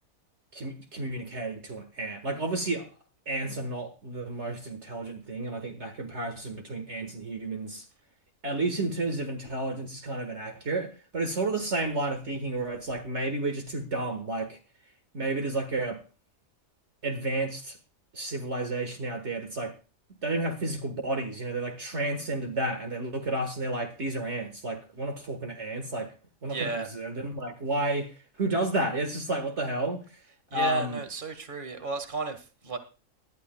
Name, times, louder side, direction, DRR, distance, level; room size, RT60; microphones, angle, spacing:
voice 1, 0.5-2.9 3.2-7.8 8.4-14.6 15.1-16.0 17.0-17.8 18.1-19.7 20.2-26.1 26.4-30.0 30.5-31.0, right 2 dB, 55° right, 1.9 m, -31 dB
voice 2, 26.4-26.9 30.5-32.8, right 5 dB, 35° right, 1.9 m, -33 dB
21.0 x 12.0 x 2.3 m
omnidirectional pair, 1.5 m